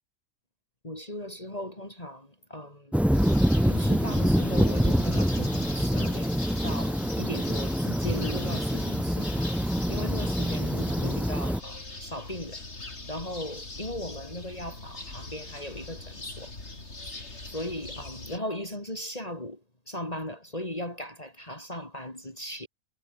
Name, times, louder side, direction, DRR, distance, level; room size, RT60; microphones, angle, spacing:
voice 1, 0.8-3.0 3.6-9.6 9.9-12.6 13.1-16.5 17.0-19.6 19.9-22.7, left 1 dB, 25° left, 4.7 m, -38 dB
sound 1, 2.9-11.6, equal, ahead, 1.3 m, -26 dB
sound 2, 3.1-18.4, left 2 dB, 50° left, 4.3 m, -41 dB
omnidirectional pair, 1.4 m